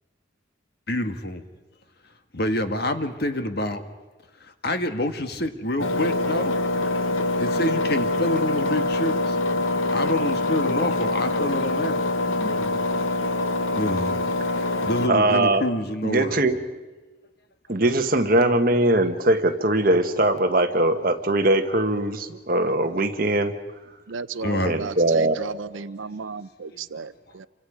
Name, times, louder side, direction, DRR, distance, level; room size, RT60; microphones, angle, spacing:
voice 1, 0.9-1.4 2.3-3.9 4.4-6.5 7.4-9.4 9.9-12.7 13.7-14.2 14.8-16.5 24.4-24.8 26.7-26.8, left 1 dB, 50° left, 8 dB, 1.4 m, -27 dB
Engine, 5.8-15.1, left 2 dB, 85° left, 1.2 m, -24 dB
voice 2, 15.1-15.6 16.0-16.6 17.7-23.5 24.6-25.4, right 1 dB, 45° right, 6 dB, 1.4 m, -21 dB
voice 3, 24.1-27.5, right 5 dB, 75° right, 15 dB, 0.6 m, -34 dB
29.0 x 24.5 x 5.0 m, 1.2 s
head